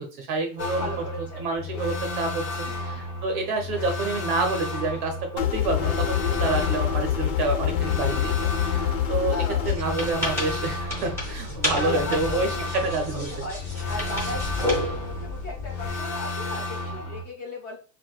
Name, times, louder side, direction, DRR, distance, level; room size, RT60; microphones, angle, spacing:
voice 1, 0.0-0.9 1.4-9.4 9.6-13.5, right 3 dB, 40° right, 3 dB, 0.6 m, -28 dB
sound 1, 0.6-17.2, left 2 dB, 50° left, 1.2 m, -33 dB
voice 2, 0.6-1.5 1.7-1.8 2.6-3.0 6.6-6.7 9.3-9.8 11.7-12.7 13.1-14.7 15.0-17.8, left 1 dB, 30° left, 0 dB, 0.9 m, -36 dB
sound 2, 5.4-9.8, left 10 dB, 85° left, 1.0 m, -25 dB
sound 3, 9.6-16.0, left 1 dB, 5° left, 0.6 m, -31 dB
4.5 x 2.2 x 2.3 m, 0.36 s
supercardioid pair, 160°, 50 cm